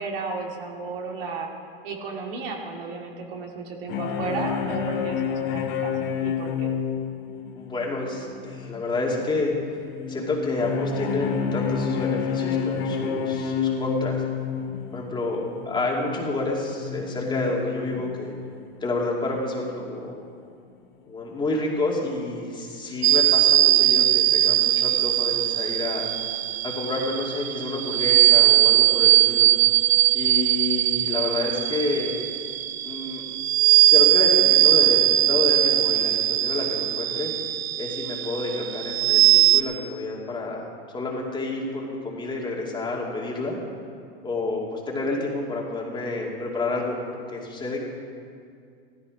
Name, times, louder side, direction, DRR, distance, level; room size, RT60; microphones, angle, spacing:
voice 1, 0.0-1.5 1.8-5.9 6.2-6.7, right 4 dB, 65° right, 1 dB, 2.6 m, -33 dB
sound 1, 3.9-18.4 18.9-19.2 19.7-19.8 20.1-20.2, left 6 dB, 50° left, 2.8 m, -29 dB
voice 2, 7.5-9.5 10.1-14.2 14.9-18.3 18.8-20.2 21.1-26.1 26.6-29.5 30.1-32.1 32.8-33.2 33.9-37.3 37.8-40.6 40.9-43.6 44.2-47.8, left 2 dB, 15° left, -2 dB, 2.5 m, -29 dB
sound 2, 23.0-39.6, right 15 dB, 80° right, 0.7 m, -20 dB
15.5 x 14.0 x 5.1 m, 2.3 s
supercardioid pair, 135°, 31 cm